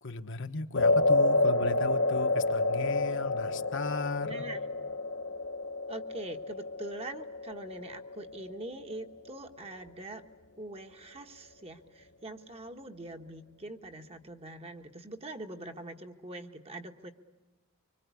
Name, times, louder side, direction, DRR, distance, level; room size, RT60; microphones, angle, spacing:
voice 1, 0.0-4.4, left 3 dB, 60° left, 7 dB, 1.2 m, -36 dB
sound 1, 0.7-9.1, left 2 dB, 85° left, 1.4 m, -29 dB
voice 2, 4.2-4.6 5.9-10.2 10.6-17.1, right 2 dB, 30° right, 5 dB, 1.3 m, -43 dB
25.0 x 25.0 x 8.4 m, 1.2 s
head